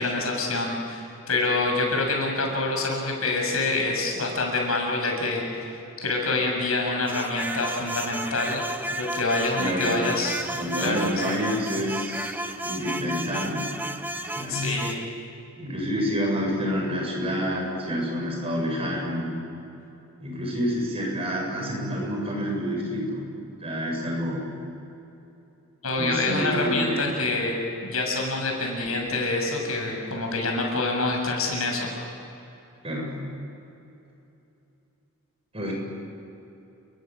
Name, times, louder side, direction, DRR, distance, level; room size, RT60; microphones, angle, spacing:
voice 1, 0.0-5.7 6.0-10.4 10.8-11.1 14.5-15.0 25.8-27.6 27.8-31.9, left 2 dB, 80° left, 1 dB, 7.3 m, -26 dB
sound 1, 7.1-15.0, right 1 dB, 10° right, 1.0 m, -33 dB
voice 2, 9.6-10.0 10.5-13.7 14.3-14.7 15.6-19.4 20.2-23.2 23.6-24.4 25.9-27.1 32.8-33.2 35.5-35.7, equal, 25° right, -1 dB, 7.5 m, -28 dB
30.0 x 23.0 x 7.7 m, 2.9 s
head